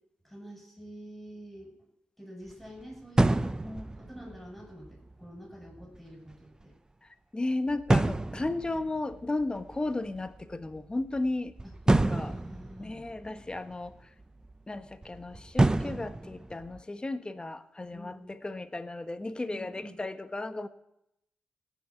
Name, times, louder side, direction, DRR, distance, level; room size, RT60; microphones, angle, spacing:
voice 1, 0.2-1.7 2.2-3.5 3.9-6.7 11.6-11.7 12.1-13.0 17.9-18.4 19.5-20.0, equal, ahead, 1 dB, 7.2 m, -46 dB
sound 1, 2.5-2.8 3.2-5.3 5.6-6.0 6.3-6.4 6.6-6.7 7.7-10.8 11.1-13.9 14.2-14.5 15.0-16.8, right 2 dB, 20° right, 0.6 m, -28 dB
voice 2, 7.3-11.5 11.9-12.4 12.8-14.0 14.7-20.7, left 2 dB, 25° left, 10 dB, 1.3 m, -34 dB
17.0 x 6.4 x 9.1 m, 0.82 s
supercardioid pair, 50°, 4 cm